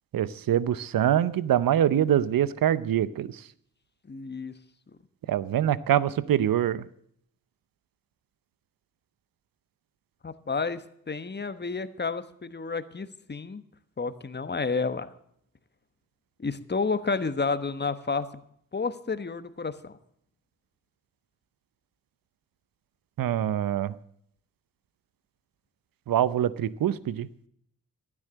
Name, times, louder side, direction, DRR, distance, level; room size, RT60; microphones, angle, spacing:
voice 1, 0.1-3.4 5.3-6.9 23.2-23.9 26.1-27.3, right 10 dB, 70° right, 18 dB, 0.7 m, -24 dB
voice 2, 4.1-4.5 10.2-13.6 14.0-15.1 16.4-18.3 18.7-20.0, left 4 dB, 30° left, 12 dB, 1.1 m, -30 dB
12.0 x 9.7 x 7.4 m, 0.69 s
supercardioid pair, 40°, 36 cm